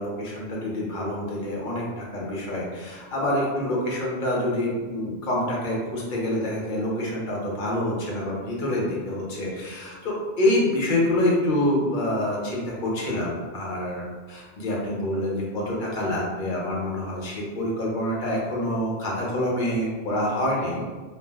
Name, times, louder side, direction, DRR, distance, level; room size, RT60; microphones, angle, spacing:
voice 1, 0.0-14.0 14.3-20.8, left 1 dB, 50° left, -3 dB, 0.8 m, -26 dB
2.5 x 2.1 x 3.4 m, 1.4 s
omnidirectional pair, 1.1 m